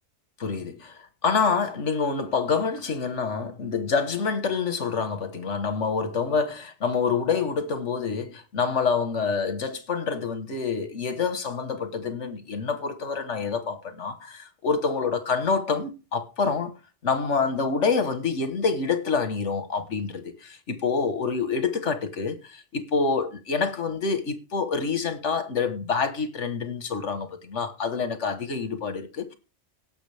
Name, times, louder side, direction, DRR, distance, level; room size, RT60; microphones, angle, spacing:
voice 1, 0.4-16.7 17.0-29.3, left 5 dB, 85° left, 1.7 m, -27 dB
18.0 x 6.2 x 3.4 m
omnidirectional pair, 1.2 m